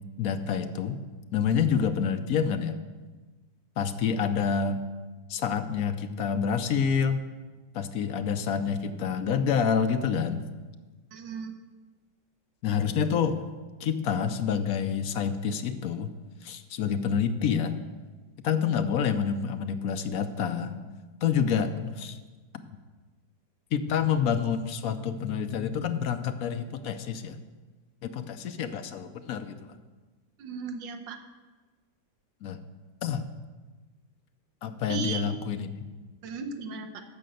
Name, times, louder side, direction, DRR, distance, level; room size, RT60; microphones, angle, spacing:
voice 1, 0.2-1.0 1.3-2.8 3.8-4.8 5.3-7.2 7.7-10.4 12.6-13.5 13.8-16.1 16.4-17.8 18.4-20.9 21.2-22.2 23.7-27.4 28.0-29.6 32.4-32.6 33.0-33.2 34.6-35.7, left 7 dB, 70° left, 9 dB, 0.9 m, -28 dB
voice 2, 11.1-11.5 30.4-31.2 34.9-35.3 36.2-37.0, right 5 dB, 75° right, 6 dB, 1.6 m, -35 dB
12.5 x 5.1 x 7.7 m, 1.3 s
omnidirectional pair, 2.1 m